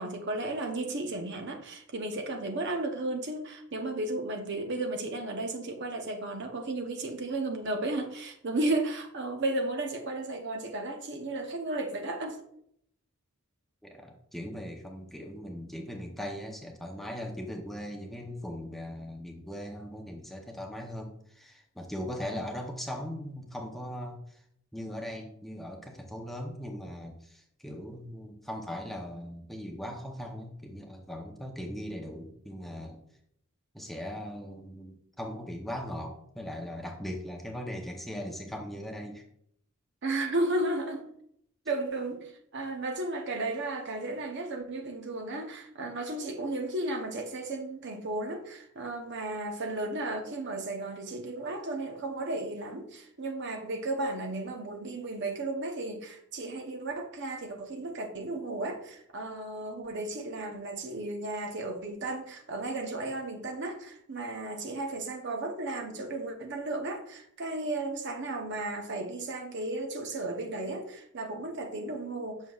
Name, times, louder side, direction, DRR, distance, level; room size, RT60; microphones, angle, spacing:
voice 1, 0.0-12.4 40.0-41.1 41.7-72.4, right 2 dB, 55° right, 0.7 m, -34 dB
voice 2, 13.8-24.4 24.7-33.0 33.7-39.2, equal, ahead, 0.6 m, -39 dB
7.3 x 6.2 x 2.3 m
head